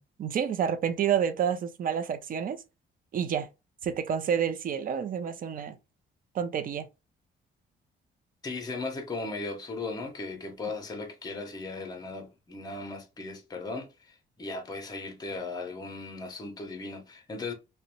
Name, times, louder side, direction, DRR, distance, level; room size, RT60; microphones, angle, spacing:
voice 1, 0.0-2.6 3.1-3.5 3.8-5.8 6.3-6.9, right 8 dB, 45° right, 0.5 m, -29 dB
voice 2, 8.4-17.5, left 3 dB, 20° left, 0.7 m, -37 dB
2.5 x 2.1 x 2.9 m
cardioid pair, 90°, 20 cm